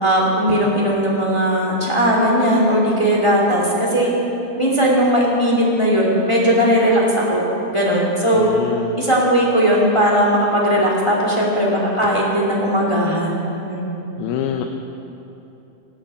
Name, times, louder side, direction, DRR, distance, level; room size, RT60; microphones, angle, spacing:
voice 1, 0.0-4.1 4.6-8.5 9.0-13.3 13.6-14.0, equal, 10° left, -3 dB, 1.6 m, -18 dB
voice 2, 8.4-9.0 14.2-14.6, left 9 dB, 85° left, 4 dB, 2.7 m, -25 dB
19.0 x 7.9 x 8.7 m, 3.0 s
omnidirectional pair, 4.3 m